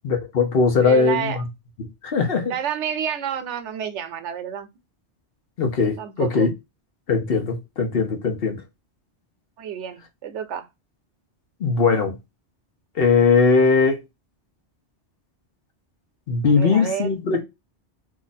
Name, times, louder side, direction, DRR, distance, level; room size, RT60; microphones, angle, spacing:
voice 1, 0.0-1.4 2.0-2.5 5.6-6.5 7.1-8.6 11.6-12.2 13.0-14.0 16.3-17.4, left 4 dB, 60° left, 1.0 m, -20 dB
voice 2, 0.8-1.4 2.4-4.7 6.0-6.5 9.6-10.7 16.5-17.1, right 8 dB, 85° right, 1.0 m, -29 dB
2.7 x 2.4 x 4.0 m
omnidirectional pair, 1.2 m